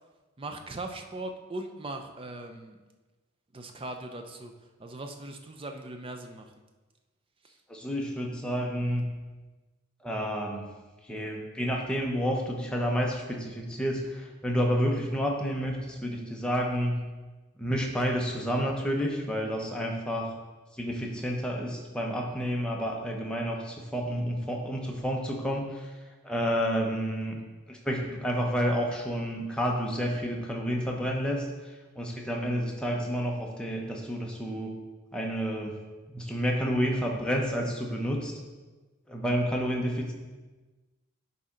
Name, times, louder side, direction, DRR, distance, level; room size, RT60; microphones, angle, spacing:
voice 1, 0.4-2.8 3.5-4.5 4.8-6.5 7.4-7.6, right 2 dB, 25° right, 5 dB, 0.5 m, -39 dB
voice 2, 7.7-9.1 10.0-10.7 11.1-17.0 17.6-20.3 20.8-25.9 26.2-27.4 27.7-31.4 32.0-34.7 35.1-35.7 36.1-38.3 39.1-40.1, equal, 5° left, -1 dB, 0.8 m, -30 dB
10.5 x 4.2 x 3.8 m, 1.2 s
head